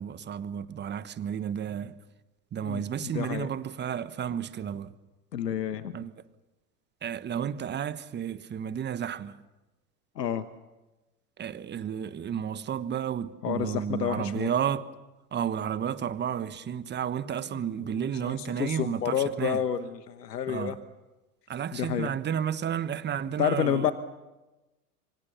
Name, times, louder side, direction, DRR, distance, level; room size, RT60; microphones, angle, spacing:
voice 1, 0.0-1.9 2.5-4.9 5.9-6.1 7.0-9.4 11.4-14.9 15.3-19.6 20.5-20.8 21.5-23.9, right 8 dB, 20° right, 1.3 m, -32 dB
voice 2, 2.6-3.5 5.3-6.0 10.2-10.4 13.4-14.5 17.8-20.8 21.7-22.1 23.4-23.9, left 9 dB, 80° left, 1.4 m, -30 dB
27.5 x 25.0 x 7.1 m
hypercardioid pair, 100°, 48 cm